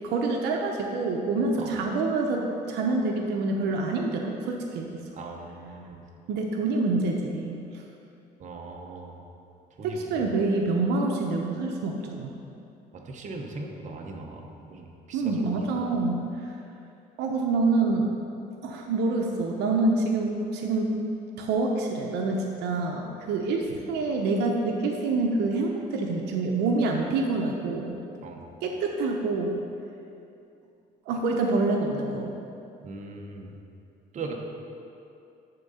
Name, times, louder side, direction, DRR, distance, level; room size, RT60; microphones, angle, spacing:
voice 1, 0.0-5.0 6.3-7.6 9.8-12.3 15.1-16.2 17.2-18.1 18.6-21.0 21.4-28.0 28.6-29.6 31.1-32.3, right 3 dB, 85° right, 1 dB, 0.7 m, -26 dB
voice 2, 5.2-6.0 8.4-9.2 9.8-10.2 12.9-16.0 28.2-28.4 32.8-33.5 34.1-34.4, right 3 dB, 45° right, 1 dB, 1.0 m, -39 dB
10.5 x 3.8 x 5.5 m, 2.7 s
cardioid pair, 110°, 17 cm